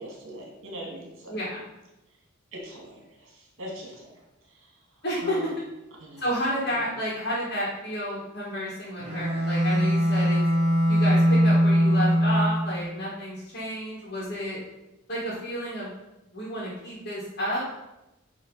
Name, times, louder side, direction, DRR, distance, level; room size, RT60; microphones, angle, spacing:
voice 1, 0.0-1.3 2.5-4.2 4.6-4.7 5.2-5.5 6.0-6.2, right 1 dB, 60° right, -2 dB, 2.2 m, -41 dB
voice 2, 1.3-1.6 5.0-5.4 6.2-10.4 10.9-14.6 15.1-15.9 16.3-17.7, equal, 45° left, -6 dB, 1.6 m, -31 dB
Bowed string instrument, 9.0-12.8, equal, 30° right, 1.4 m, -21 dB
8.9 x 3.3 x 4.8 m, 0.98 s
head